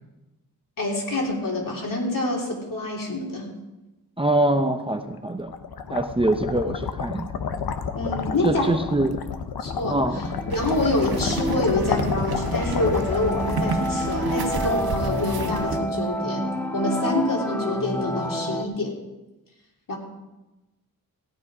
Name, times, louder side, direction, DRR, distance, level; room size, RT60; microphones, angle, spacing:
voice 1, 0.8-3.5 7.9-8.7 9.6-10.0 10.5-16.5 16.7-19.0 19.9-20.0, left 2 dB, 60° left, -1 dB, 3.2 m, -26 dB
voice 2, 4.2-5.5 5.9-7.3 8.4-9.3 9.9-10.3, right 1 dB, 15° right, 5 dB, 0.7 m, -24 dB
sound 1, 5.2-16.3, left 6 dB, 75° left, 0.9 m, -31 dB
sound 2, 9.6-18.6, equal, 5° left, 1.3 m, -30 dB
sound 3, 10.5-15.8, right 4 dB, 75° right, 1.4 m, -31 dB
15.5 x 9.5 x 4.9 m, 1.0 s
wide cardioid pair, 110°, 37 cm